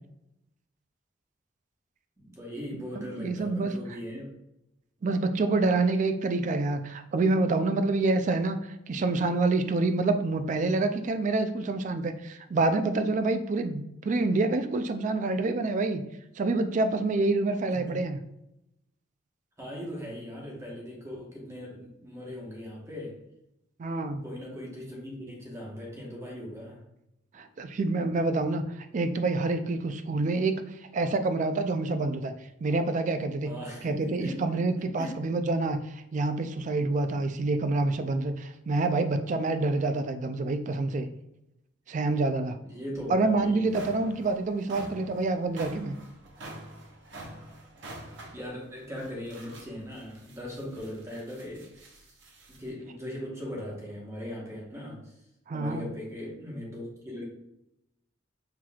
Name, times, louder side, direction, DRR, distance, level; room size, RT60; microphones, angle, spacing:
voice 1, 2.2-4.3 17.7-18.0 19.6-23.1 24.2-26.8 33.5-34.7 35.0-35.2 42.6-43.7 47.8-48.0 48.3-52.2 52.5-55.1 55.5-57.3, equal, 15° right, -3 dB, 1.1 m, -39 dB
voice 2, 3.0-3.7 5.0-8.6 8.9-16.0 16.4-18.2 23.8-24.2 27.3-32.3 32.6-33.5 33.8-41.1 41.9-42.6 43.1-46.0 55.5-55.9, right 3 dB, 40° right, 8 dB, 0.3 m, -27 dB
sound 1, 43.0-43.1 43.5-52.7, right 1 dB, 65° right, 0.8 m, -47 dB
5.7 x 3.1 x 2.3 m, 0.86 s
head